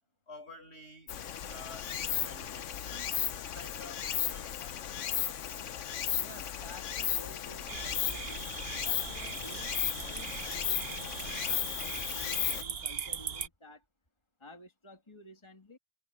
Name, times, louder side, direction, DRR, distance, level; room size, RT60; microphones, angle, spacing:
voice 1, 0.3-1.1 1.5-4.9, left 2 dB, 55° left, 4.9 m, -51 dB
Stream, 1.1-12.6, left 10 dB, 80° left, 1.2 m, -35 dB
voice 2, 6.2-8.4 8.7-9.7 10.0-13.8 14.4-15.8, left 1 dB, 20° left, 2.5 m, -52 dB
sound 1, 7.7-13.5, right 7 dB, 55° right, 1.1 m, -40 dB
omnidirectional pair, 1.3 m